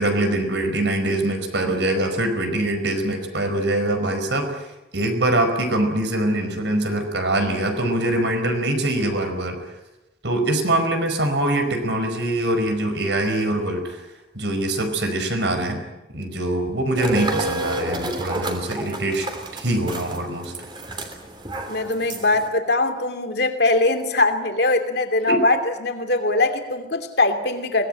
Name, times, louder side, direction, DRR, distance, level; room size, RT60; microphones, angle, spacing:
voice 1, 0.0-4.6 4.9-9.6 10.2-14.0 14.3-15.8 16.1-19.3 19.5-20.5 25.3-25.4, right 1 dB, 70° right, 6 dB, 4.9 m, -23 dB
sound 1, 16.9-22.5, right 1 dB, 25° right, 3.2 m, -30 dB
voice 2, 21.7-27.9, left 2 dB, 60° left, 6 dB, 2.8 m, -21 dB
23.5 x 19.0 x 9.0 m, 1.0 s
head